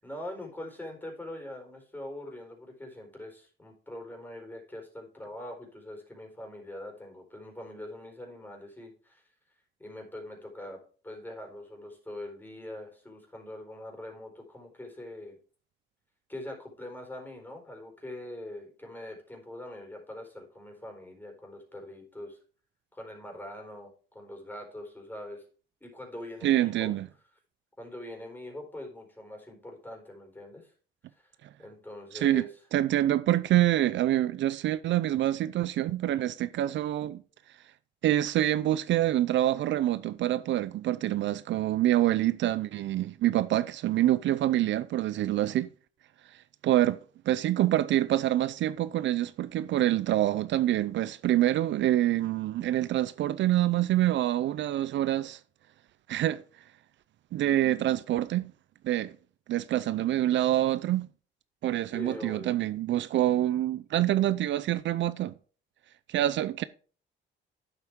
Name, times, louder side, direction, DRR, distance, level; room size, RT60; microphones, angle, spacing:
voice 1, 0.0-9.2 9.8-15.4 16.3-22.4 22.9-25.4 25.8-26.9 27.8-30.7 31.6-32.5 61.9-62.5, left 1 dB, 10° left, 4.3 m, -43 dB
voice 2, 26.4-27.1 32.1-32.5 32.7-37.2 38.0-45.7 46.6-47.0 47.3-55.4 56.1-56.4 57.3-58.5 58.8-59.2 59.5-61.1 61.6-65.3 66.1-66.6, right 13 dB, 70° right, 0.5 m, -26 dB
10.0 x 8.0 x 3.6 m
cardioid pair, 90°, 20 cm